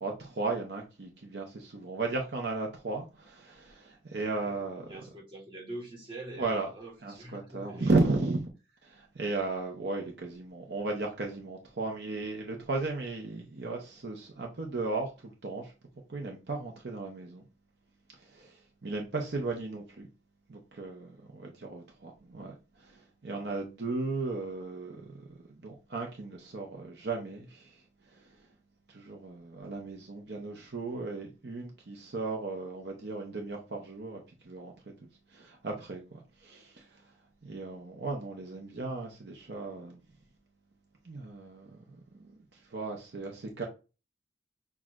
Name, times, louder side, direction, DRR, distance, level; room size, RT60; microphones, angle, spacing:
voice 1, 0.0-4.9 6.4-6.7 7.0-8.5 8.8-15.7 16.1-17.4 18.3-20.1 20.5-27.7 28.2-28.3 28.9-34.2 34.4-34.7 35.3-36.9 37.4-40.0 41.0-42.3 42.7-43.7, right 3 dB, 65° right, 0.8 m, -35 dB
voice 2, 4.9-7.9, right 2 dB, 25° right, 1.4 m, -44 dB
6.1 x 2.4 x 2.5 m
head